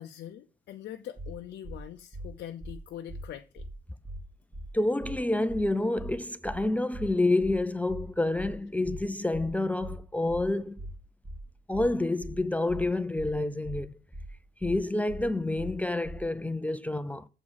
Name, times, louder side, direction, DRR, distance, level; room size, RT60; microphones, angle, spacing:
voice 1, 0.0-3.6, left 11 dB, 55° left, 0.6 m, -43 dB
sound 1, 1.2-1.3 1.6-1.8 2.1-2.3 2.6-2.8 3.1-3.2 3.6-3.7 4.0-4.2 4.5-4.7 5.0-5.2 5.5-5.6 6.0-6.1 6.4-6.6 6.9-7.1 7.4-7.6 7.9-8.0 8.4-8.5 8.8-9.0 9.3-9.5 9.8-10.0 10.3-10.4 10.8-10.9 11.2-11.4 11.7-11.9 12.2-12.4 12.7-12.8 13.2-13.3 13.6-13.8 14.1-14.3 14.6-14.8 15.1-15.2 15.6-15.7 16.0-16.2, right 1 dB, 10° right, 0.9 m, -40 dB
voice 2, 4.7-10.8 11.7-14.0 14.6-17.3, left 2 dB, 5° left, 0.3 m, -28 dB
7.4 x 4.8 x 5.5 m
cardioid pair, 140°, 20 cm